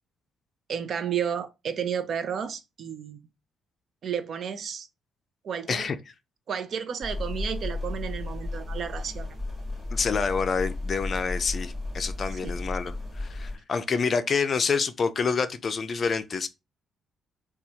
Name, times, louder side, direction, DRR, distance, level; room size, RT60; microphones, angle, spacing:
voice 1, 0.7-3.2 4.0-4.9 5.4-5.9 6.5-9.3 12.4-12.6, right 8 dB, 60° right, 0.5 m, -32 dB
sound 1, 7.0-13.6, left 2 dB, 5° left, 2.1 m, -34 dB
voice 2, 9.9-16.5, left 5 dB, 45° left, 0.4 m, -27 dB
4.1 x 2.3 x 2.7 m
cardioid pair, 90°, 0 cm